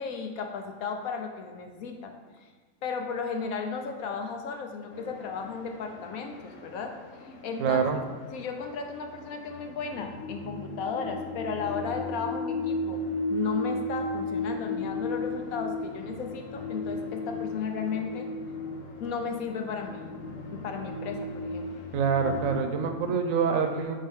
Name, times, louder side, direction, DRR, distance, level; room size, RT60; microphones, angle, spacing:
voice 1, 0.0-2.1 2.8-6.9 7.2-8.0 8.3-18.3 19.0-20.1 20.5-21.7, left 5 dB, 90° left, 4 dB, 1.2 m, -34 dB
sound 1, 4.9-22.5, left 2 dB, 70° left, 1.1 m, -35 dB
voice 2, 7.6-8.0 21.9-23.9, right 6 dB, 75° right, 5 dB, 1.1 m, -26 dB
8.0 x 3.7 x 3.6 m, 1.4 s
omnidirectional pair, 1.5 m